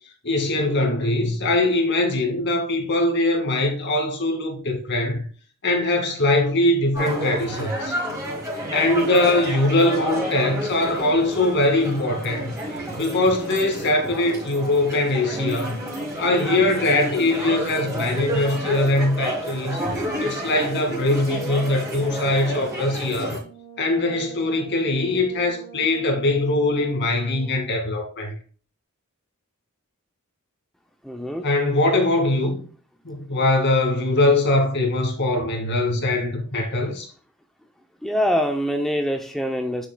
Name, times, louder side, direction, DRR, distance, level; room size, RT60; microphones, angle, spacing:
voice 1, 0.2-5.3 5.6-7.9 8.7-12.5 13.0-15.8 16.2-19.8 20.2-23.4 23.8-28.3 31.4-32.6 33.0-37.1, left 2 dB, 55° left, 2.1 m, -22 dB
sound 1, 6.9-23.4, equal, 15° right, 3.2 m, -30 dB
Brass instrument, 23.4-27.7, right 5 dB, 20° left, 2.9 m, -43 dB
voice 2, 31.0-31.4 38.0-39.9, equal, ahead, 0.5 m, -24 dB
9.5 x 6.6 x 2.2 m
head